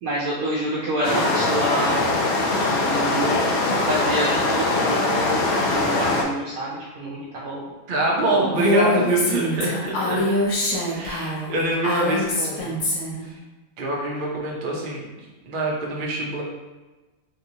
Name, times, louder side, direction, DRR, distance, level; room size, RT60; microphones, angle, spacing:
voice 1, 0.0-2.0 2.6-7.6 8.4-8.6 9.6-9.7, right 1 dB, 80° right, -6 dB, 1.1 m, -28 dB
sound 1, 1.0-6.2, left 2 dB, 60° left, 0.7 m, -22 dB
voice 2, 7.9-10.3 10.9-12.8 13.8-15.1 15.4-16.4, right 2 dB, 45° right, -3 dB, 0.8 m, -25 dB
Female speech woman speaking, 8.6-13.2, left 1 dB, 90° left, 1.4 m, -24 dB
3.7 x 2.9 x 2.7 m, 1.2 s
omnidirectional pair, 1.5 m